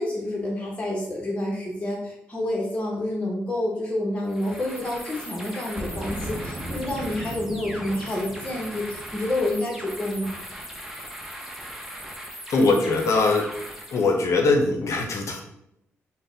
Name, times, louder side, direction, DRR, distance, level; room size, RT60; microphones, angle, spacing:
voice 1, 0.0-10.4, left 1 dB, 25° left, -3 dB, 0.9 m, -28 dB
sound 1, 4.3-14.2, equal, 5° right, 0.7 m, -39 dB
Boom, 5.8-10.4, right 1 dB, 40° right, 0.7 m, -37 dB
voice 2, 12.5-13.5 13.9-15.4, left 3 dB, 65° left, 2 dB, 0.5 m, -21 dB
3.9 x 2.1 x 3.7 m, 0.79 s
cardioid pair, 65°, 5 cm